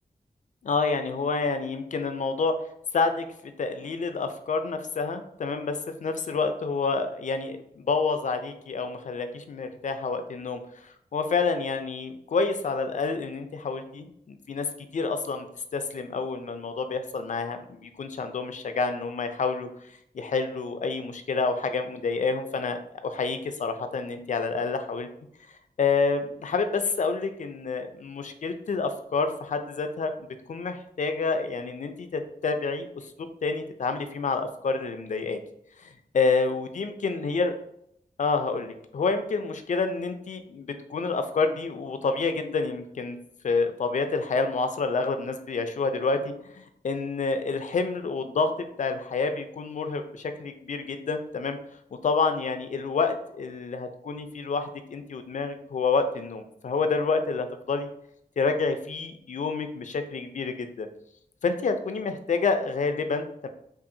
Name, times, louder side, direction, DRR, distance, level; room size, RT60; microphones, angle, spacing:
voice 1, 0.6-2.6 2.9-3.3 3.6-15.5 15.7-19.7 20.1-25.1 25.8-35.4 35.8-37.5 38.2-43.2 43.4-51.6 52.0-57.9 58.4-60.9 61.4-63.5, left 4 dB, 55° left, 8 dB, 0.4 m, -28 dB
5.4 x 2.4 x 2.6 m, 0.74 s
wide cardioid pair, 140°, 15 cm